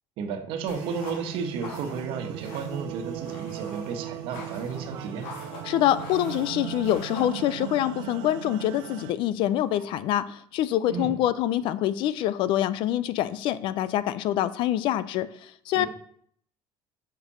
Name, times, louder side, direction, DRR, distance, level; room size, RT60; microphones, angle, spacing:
voice 1, 0.2-5.3 10.9-11.2 15.7-15.9, right 5 dB, 65° right, 6 dB, 1.4 m, -33 dB
sound 1, 0.7-7.8, left 4 dB, 75° left, 2.4 m, -45 dB
sound 2, 0.7-9.1, right 12 dB, 90° right, 0.6 m, -38 dB
sound 3, 4.6-9.9, right 6 dB, 45° right, 1.8 m, -51 dB
voice 2, 5.6-15.9, left 12 dB, 60° left, 16 dB, 0.5 m, -25 dB
6.1 x 5.9 x 6.7 m, 0.64 s
cardioid pair, 155°, 10 cm